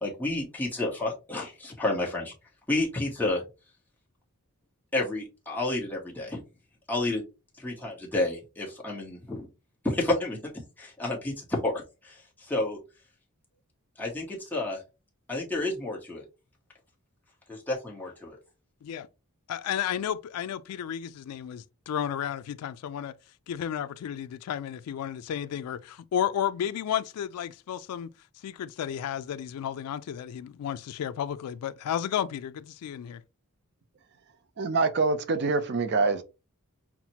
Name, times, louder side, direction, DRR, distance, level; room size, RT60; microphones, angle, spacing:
voice 1, 0.0-2.3 2.7-3.4 4.9-6.4 6.9-7.2 7.6-9.5 9.8-10.5 10.8-12.8 14.0-14.8 15.3-16.2 17.5-18.4, left 2 dB, 10° left, 1.1 m, -30 dB
voice 2, 19.5-23.1 23.5-28.1 28.4-33.2, left 9 dB, 80° left, 0.3 m, -32 dB
voice 3, 34.6-36.2, right 4 dB, 50° right, 0.5 m, -25 dB
5.8 x 2.1 x 2.8 m
head